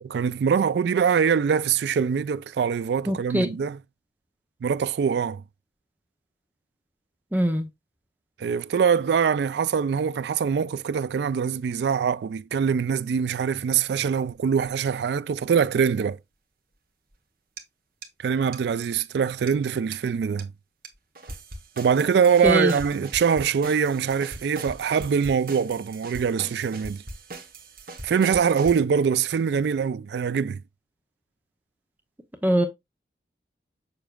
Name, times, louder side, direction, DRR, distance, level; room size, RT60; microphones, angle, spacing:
voice 1, 0.0-3.8 4.6-5.4 8.4-16.2 18.2-20.5 21.8-27.0 28.0-30.6, right 6 dB, 75° right, 0.3 m, -23 dB
voice 2, 3.1-3.5 7.3-7.7 22.4-22.7 32.4-32.7, equal, 10° right, 0.7 m, -22 dB
sound 1, 14.3-14.4 14.6-14.7 17.6-17.7 18.0-18.1 18.5-18.6 19.0-19.1 19.5-19.6 19.9-20.0 20.4-20.5 20.8-20.9 21.2-28.8, right 2 dB, 50° right, 1.2 m, -40 dB
6.9 x 6.0 x 2.3 m
head